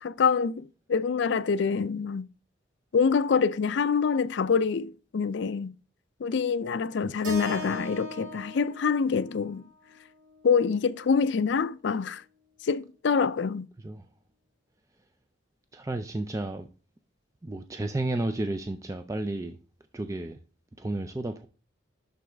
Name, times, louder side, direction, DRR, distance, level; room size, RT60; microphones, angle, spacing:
voice 1, 0.0-2.3 2.9-5.7 6.2-9.6 10.4-12.2 12.6-13.7, left 5 dB, 60° left, 0.4 m, -26 dB
voice 2, 7.0-7.4 13.8-14.1 15.7-16.7 17.4-19.6 19.9-20.4 20.8-21.5, right 2 dB, 15° right, 0.4 m, -32 dB
Keyboard (musical), 7.2-11.5, equal, 70° right, 1.5 m, -42 dB
11.0 x 4.0 x 3.4 m
head